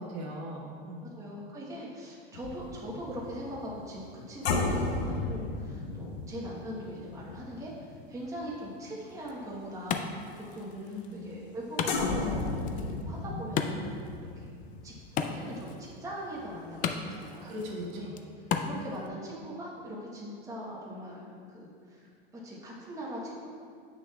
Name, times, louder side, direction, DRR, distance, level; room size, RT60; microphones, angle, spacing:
voice 1, 0.0-1.1 10.7-11.2 17.4-18.1, equal, 55° right, -3 dB, 1.6 m, -39 dB
voice 2, 1.1-10.1 10.5-14.5 14.8-14.9 15.3-17.5 17.9-18.1 18.6-23.5, equal, 10° right, -5 dB, 1.1 m, -41 dB
sound 1, 2.3-8.9 9.3-9.5 11.9-16.5 16.8-17.0, left 3 dB, 80° left, 0.8 m, -34 dB
Wood, 9.1-19.1, left 6 dB, 25° left, 0.3 m, -37 dB
7.5 x 6.2 x 2.3 m, 2.3 s
hypercardioid pair, 115°, 31 cm